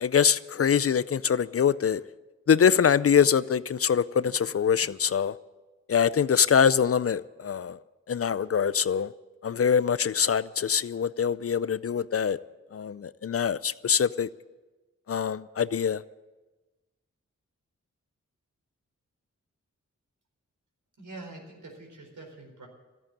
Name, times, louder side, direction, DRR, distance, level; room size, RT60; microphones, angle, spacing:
voice 1, 0.0-2.0 2.5-5.3 5.9-7.8 8.1-9.1 9.4-12.4 12.7-14.3 15.1-16.0, left 7 dB, 50° left, 0.5 m, -24 dB
voice 2, 21.0-22.7, right 2 dB, 80° right, 4.4 m, -45 dB
13.5 x 9.0 x 9.9 m
cardioid pair, 60°, 31 cm